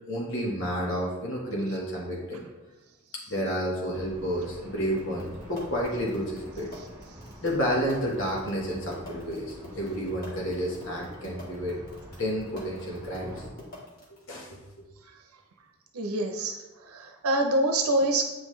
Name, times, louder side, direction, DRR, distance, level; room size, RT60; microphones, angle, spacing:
voice 1, 0.1-2.4 3.3-6.7 7.4-11.8 12.2-13.4 14.3-14.6, equal, 55° left, -3 dB, 1.5 m, -30 dB
sound 1, 3.9-13.5, equal, 10° right, 1.3 m, -47 dB
sound 2, 5.0-14.2, left 1 dB, 40° left, 1.7 m, -44 dB
voice 2, 15.9-16.6 16.8-18.3, right 1 dB, 80° right, 4 dB, 0.8 m, -25 dB
8.5 x 5.5 x 3.3 m, 1.1 s
head